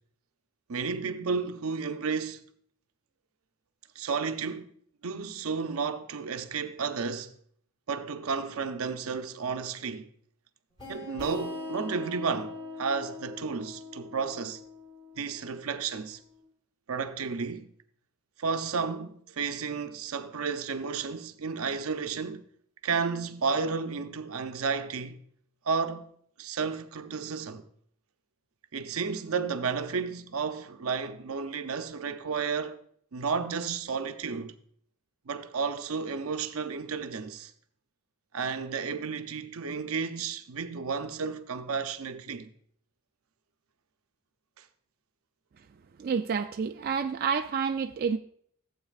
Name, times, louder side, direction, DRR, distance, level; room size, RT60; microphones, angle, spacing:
voice 1, 0.7-2.4 4.0-4.7 5.0-7.3 7.9-10.1 10.9-14.6 15.2-16.2 16.9-17.6 18.4-22.4 22.8-25.2 25.7-26.1 26.4-27.6 28.7-32.8 33.1-34.5 35.3-37.5 38.3-42.5 44.6-44.7, right 5 dB, 80° right, 0.6 m, -32 dB
sound 1, 10.8-16.2, left 2 dB, 25° left, 4.8 m, -42 dB
voice 2, 46.0-48.2, right 6 dB, 45° right, 0.3 m, -29 dB
15.0 x 8.0 x 2.4 m
head